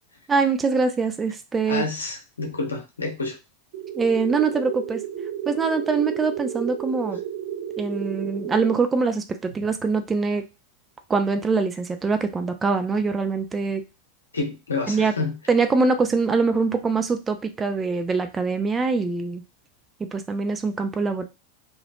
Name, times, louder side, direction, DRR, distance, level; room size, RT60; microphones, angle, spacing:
voice 1, 0.3-1.8 3.9-5.0 5.5-7.2 7.8-10.4 11.1-13.8 14.9-15.1 15.5-19.4 20.1-21.2, right 4 dB, 20° right, 8 dB, 0.5 m, -23 dB
voice 2, 1.7-3.4 14.3-15.4, left 3 dB, 85° left, 2 dB, 0.9 m, -28 dB
sound 1, 3.7-8.7, right 10 dB, 55° right, 1.0 m, -32 dB
3.3 x 2.4 x 2.4 m, 0.27 s
figure-of-eight pair, 90°, 0 cm